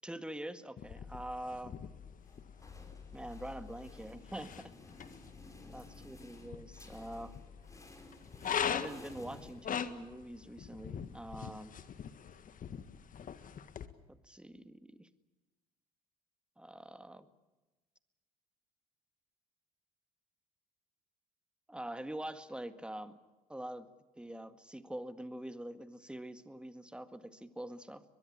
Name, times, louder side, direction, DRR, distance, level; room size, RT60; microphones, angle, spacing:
voice 1, 0.0-1.7 3.1-4.7 5.7-7.4 8.7-11.7 14.1-15.1 16.6-17.3 21.7-23.1 23.5-23.9 24.2-28.0, right 1 dB, 5° right, 11 dB, 1.9 m, -44 dB
sound 1, 0.8-13.9, left 8 dB, 40° left, 1.8 m, -43 dB
sound 2, 2.2-10.2, left 2 dB, 15° left, 4.8 m, -55 dB
22.5 x 22.5 x 8.6 m, 1.1 s
hypercardioid pair, 60°, 21 cm